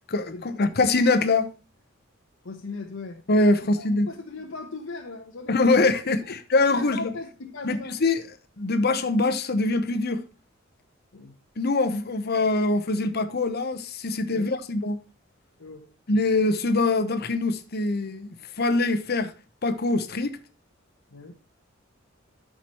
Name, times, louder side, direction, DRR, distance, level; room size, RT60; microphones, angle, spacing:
voice 1, 0.1-1.5 3.3-4.1 5.5-7.1 7.6-8.2 8.6-10.2 11.6-15.0 16.1-19.3 19.6-20.4, left 2 dB, 55° left, 0.9 m, -23 dB
voice 2, 2.4-3.2 3.8-5.7 6.7-7.9 11.1-11.3 14.3-14.5 15.6-15.9 21.1-21.3, left 3 dB, 75° left, 1.0 m, -38 dB
13.0 x 5.0 x 3.0 m
head